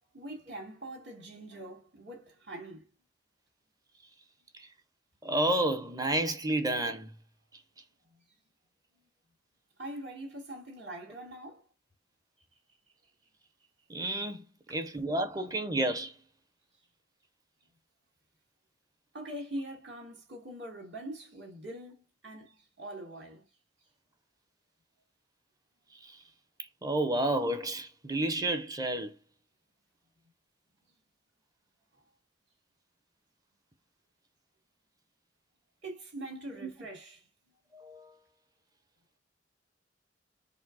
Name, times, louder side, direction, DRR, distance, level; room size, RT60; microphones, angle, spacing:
voice 1, 0.1-2.9 9.8-11.7 14.7-14.8 19.1-23.4 35.8-37.2, right 1 dB, 70° right, 2.4 m, -43 dB
voice 2, 5.2-7.1 13.9-14.4 14.7-16.1 26.8-29.1 36.6-36.7 37.7-38.1, right 1 dB, 20° right, 0.6 m, -30 dB
4.9 x 2.0 x 3.9 m
head